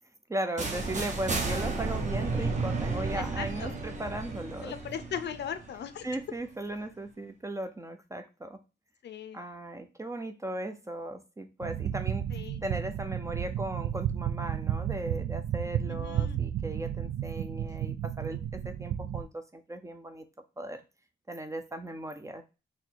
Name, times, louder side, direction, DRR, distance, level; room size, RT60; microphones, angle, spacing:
voice 1, 0.3-4.7 6.0-8.6 9.3-12.3 12.6-20.2 20.6-20.8 21.3-22.4, right 1 dB, 15° right, 7 dB, 0.4 m, -37 dB
sound 1, 0.6-6.4, right 3 dB, 35° right, 0.9 m, -33 dB
voice 2, 3.1-3.7 4.6-6.0 9.0-9.4 12.3-12.6 15.9-16.4, left 8 dB, 60° left, 10 dB, 0.5 m, -38 dB
sound 2, 11.6-19.2, right 10 dB, 85° right, 0.4 m, -32 dB
4.1 x 2.8 x 4.4 m, 0.30 s
wide cardioid pair, 165°, 20 cm